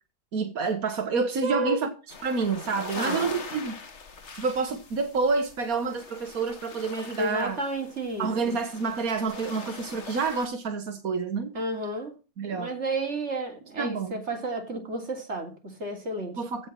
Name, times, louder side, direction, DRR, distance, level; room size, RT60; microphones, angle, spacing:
voice 1, 0.3-1.9 2.2-3.8 4.3-7.6 8.2-11.5 12.4-12.7 13.8-14.1 16.4-16.7, right 4 dB, 85° right, 1.9 m, -28 dB
voice 2, 1.4-1.8 3.0-3.3 7.2-8.5 11.5-12.1 12.5-16.4, right 2 dB, 50° right, 3.4 m, -31 dB
sound 1, 2.1-10.5, left 5 dB, 55° left, 1.7 m, -42 dB
16.0 x 5.4 x 7.5 m
omnidirectional pair, 1.5 m